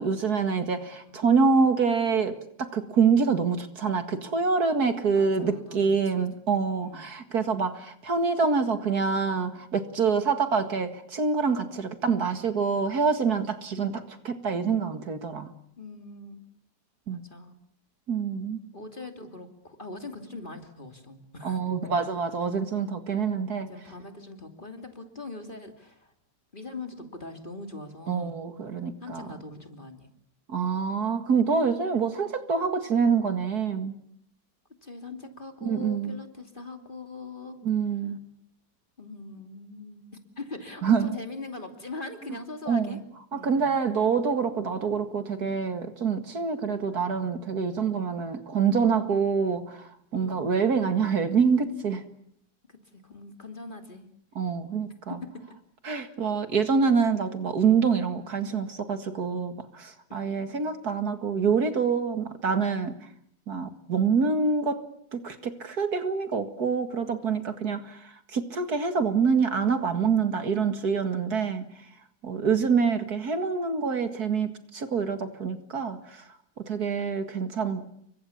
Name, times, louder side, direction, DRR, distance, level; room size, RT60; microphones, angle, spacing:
voice 1, 0.0-15.5 17.1-17.2 18.1-18.6 21.4-23.7 28.1-29.3 30.5-33.9 35.6-36.2 37.6-38.2 40.8-41.2 42.7-43.0 43.3-52.0 54.4-55.2 55.8-63.0 63.5-64.8 65.1-71.6 72.2-76.2 76.6-77.9, right 5 dB, 60° right, 9 dB, 2.4 m, -26 dB
voice 2, 5.1-6.3 6.8-7.1 15.8-16.4 17.1-17.6 18.7-21.9 23.7-26.1 26.5-28.4 29.0-30.1 34.8-37.6 39.0-40.0 40.4-43.0 43.3-43.7 50.1-50.6 52.7-54.1 55.1-55.4 60.1-60.5, left 3 dB, 30° left, 6 dB, 3.0 m, -41 dB
29.5 x 24.5 x 7.2 m, 0.69 s
omnidirectional pair, 1.9 m